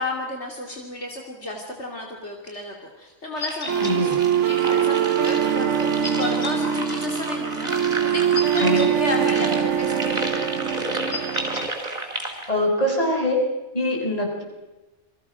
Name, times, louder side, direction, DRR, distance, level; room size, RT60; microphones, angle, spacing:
voice 1, 0.0-10.5, left 2 dB, 70° left, 1 dB, 3.2 m, -32 dB
sound 1, 3.4-3.9 6.0-6.5 8.3-8.9 11.1-11.7, left 3 dB, 85° left, 3.3 m, -32 dB
sound 2, 3.4-12.5, right 1 dB, 35° right, 4.8 m, -32 dB
sound 3, 3.7-11.7, right 8 dB, 80° right, 1.3 m, -23 dB
voice 2, 3.8-4.1 8.6-8.9 12.5-13.4 13.7-14.4, left 1 dB, 30° left, 0 dB, 6.4 m, -23 dB
29.5 x 23.0 x 6.3 m, 1.1 s
omnidirectional pair, 1.2 m